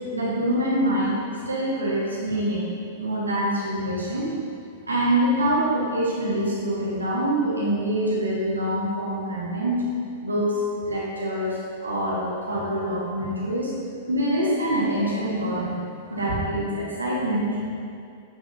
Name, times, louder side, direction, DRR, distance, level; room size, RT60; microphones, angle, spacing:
voice 1, 0.1-1.2 1.5-2.7 3.0-4.3 4.9-9.8 10.2-10.5 10.8-13.7 14.1-17.6, right 1 dB, 85° right, -6 dB, 1.5 m, -25 dB
7.7 x 4.9 x 2.6 m, 2.4 s
figure-of-eight pair, 100°, 0 cm